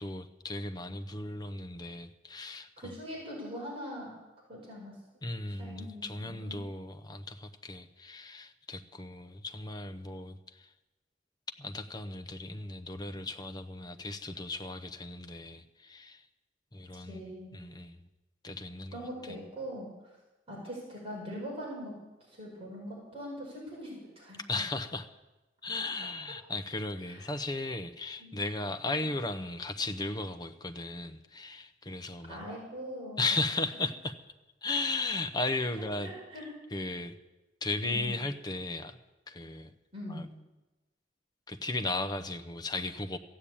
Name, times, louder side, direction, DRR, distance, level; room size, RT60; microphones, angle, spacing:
voice 1, 0.0-2.9 5.2-10.7 11.6-16.2 16.7-18.0 18.4-19.0 24.5-25.1 25.6-32.4 33.2-34.2 34.6-36.1 36.7-37.2 37.6-39.0 39.3-39.7 40.1-40.2 41.5-43.2, left 2 dB, 25° left, 8 dB, 0.8 m, -36 dB
voice 2, 2.8-4.1 4.5-4.9 5.6-6.6 17.1-17.6 18.9-19.9 20.5-21.9 22.3-24.4 27.0-27.2 28.2-28.3 32.3-33.3 36.0-36.5 37.8-38.2 39.9-40.2, equal, 30° right, -4 dB, 5.1 m, -41 dB
14.5 x 8.8 x 8.5 m, 1.1 s
head